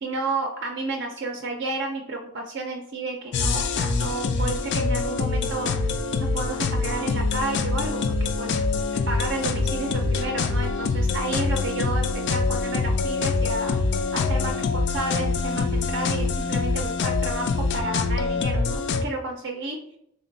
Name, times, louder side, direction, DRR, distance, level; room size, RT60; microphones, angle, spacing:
voice 1, 0.0-5.9 6.2-8.6 9.1-13.8 14.1-17.5 17.7-19.8, right 2 dB, 55° right, 2 dB, 0.5 m, -31 dB
sound 1, 3.3-19.1, left 4 dB, 55° left, 0.3 m, -25 dB
3.5 x 2.1 x 3.9 m, 0.74 s
head